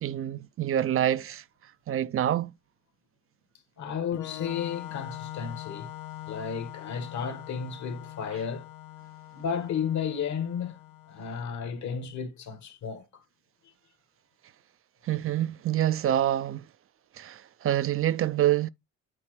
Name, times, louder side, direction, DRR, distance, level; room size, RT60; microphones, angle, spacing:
voice 1, 0.0-1.4 1.9-2.5 15.0-16.6 17.1-18.7, right 12 dB, 45° right, 0.4 m, -26 dB
voice 2, 3.8-5.9 6.3-8.7 9.3-10.8 11.1-13.2, left 7 dB, 70° left, 1.6 m, -33 dB
Organ, 4.1-11.6, left 14 dB, 90° left, 1.1 m, -43 dB
8.7 x 4.0 x 3.1 m
cardioid pair, 90°, 30 cm